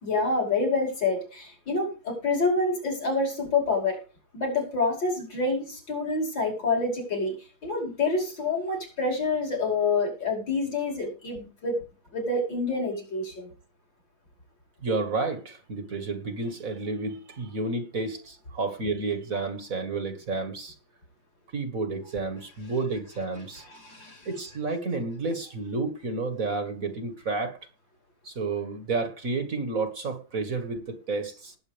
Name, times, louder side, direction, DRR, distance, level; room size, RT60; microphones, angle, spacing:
voice 1, 0.0-4.0 4.3-7.3 7.6-11.8 12.1-13.5 23.7-24.3, left 3 dB, 60° left, 6.0 m, -27 dB
voice 2, 14.8-20.8 21.5-23.7 24.3-27.6 28.2-31.6, right 3 dB, 40° right, 2.0 m, -31 dB
19.5 x 8.2 x 3.4 m
omnidirectional pair, 2.3 m